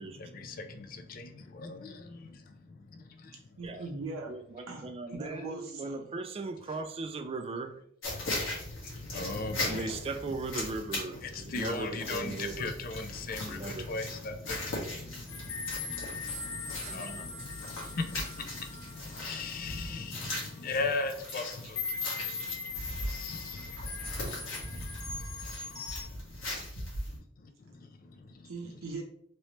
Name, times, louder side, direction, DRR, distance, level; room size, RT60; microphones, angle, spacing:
voice 1, 0.0-3.5 8.1-10.0 10.3-26.7 27.1-28.8, left 3 dB, 45° left, 0.4 m, -40 dB
voice 2, 3.6-4.3 4.7-6.1 28.4-29.0, right 3 dB, 80° right, 0.6 m, -40 dB
voice 3, 4.3-7.7 9.6-12.7 13.5-13.9 16.9-17.2, right 3 dB, 30° right, 0.3 m, -38 dB
sound 1, 8.0-27.2, left 1 dB, 75° left, 1.3 m, -39 dB
sound 2, 15.3-20.4 20.9-21.0 21.8-26.0, left 4 dB, 20° left, 0.8 m, -40 dB
3.1 x 3.0 x 2.8 m
head